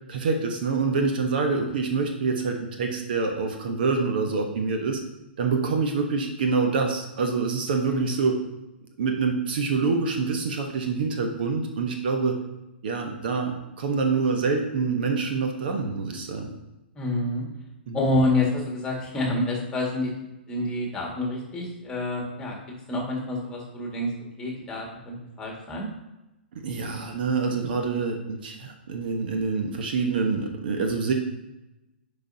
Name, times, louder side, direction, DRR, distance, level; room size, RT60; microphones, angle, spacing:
voice 1, 0.1-5.0 5.4-8.4 9.0-12.4 12.8-16.5 17.9-18.0 26.6-31.1, right 4 dB, 55° right, 3 dB, 1.1 m, -26 dB
voice 2, 17.0-17.4 17.9-20.1 20.5-22.6 22.9-24.1 24.4-25.9, left 2 dB, 15° left, -2 dB, 2.0 m, -27 dB
10.0 x 5.3 x 2.8 m, 0.96 s
figure-of-eight pair, 115°, 6 cm